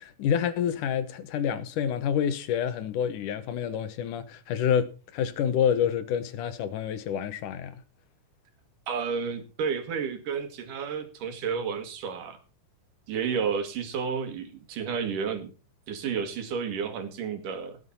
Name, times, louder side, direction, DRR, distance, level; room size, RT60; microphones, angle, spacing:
voice 1, 0.0-7.8, left 8 dB, 80° left, 2.6 m, -28 dB
voice 2, 8.9-12.4 13.1-15.5 15.9-17.8, right 6 dB, 80° right, 3.6 m, -31 dB
17.5 x 8.2 x 4.2 m
omnidirectional pair, 3.7 m